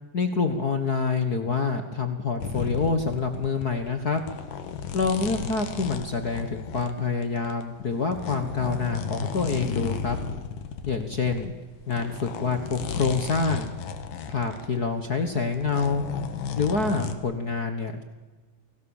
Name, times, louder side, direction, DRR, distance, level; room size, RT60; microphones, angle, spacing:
voice 1, 0.1-4.2 4.9-10.2 10.9-11.5 11.9-13.7 14.3-16.0 16.6-18.0, left 4 dB, 50° left, 7 dB, 1.2 m, -26 dB
sound 1, 2.4-11.5 11.8-17.1, left 7 dB, 90° left, 3.2 m, -34 dB
29.0 x 19.0 x 7.2 m, 1.3 s
omnidirectional pair, 3.7 m